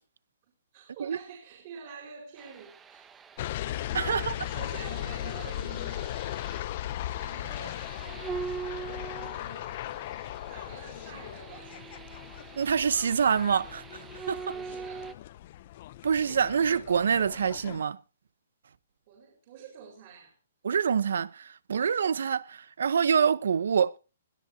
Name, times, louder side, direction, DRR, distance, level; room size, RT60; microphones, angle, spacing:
voice 1, 0.7-3.3 3.7-6.1 7.1-8.7 9.2-9.7 10.5-12.1 14.5-15.1 19.1-20.3, right 6 dB, 40° right, 4.3 m, -48 dB
sound 1, 2.4-15.1, right 6 dB, 10° right, 1.0 m, -43 dB
sound 2, 3.4-17.8, left 13 dB, 40° left, 0.6 m, -38 dB
voice 2, 3.9-4.3 12.6-13.8 14.3-14.5 16.0-18.0 20.6-24.0, right 7 dB, 75° right, 0.9 m, -26 dB
21.0 x 13.0 x 2.7 m
hypercardioid pair, 160°, 0 cm